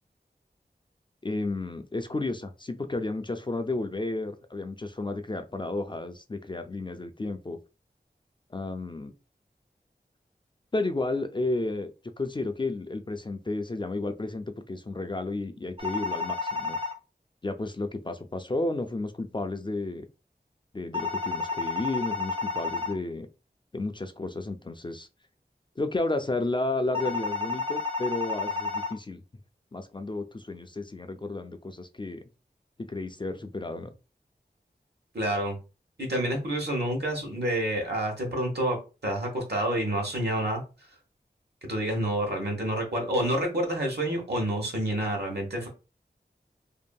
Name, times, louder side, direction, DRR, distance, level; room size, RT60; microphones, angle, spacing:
voice 1, 1.2-7.6 8.5-9.1 10.7-16.8 17.4-20.1 20.7-23.3 23.7-25.1 25.8-29.2 29.7-32.3 32.8-33.9, left 2 dB, 25° left, 7 dB, 0.3 m, -32 dB
sound 1, 15.8-16.9 20.9-22.9 26.9-28.9, left 4 dB, 30° right, 0.5 m, -31 dB
voice 2, 35.1-35.6 36.0-38.8 39.0-40.6 41.6-45.7, right 1 dB, 70° right, 0 dB, 1.0 m, -28 dB
2.6 x 2.6 x 2.2 m, 0.31 s
wide cardioid pair, 45°, 18 cm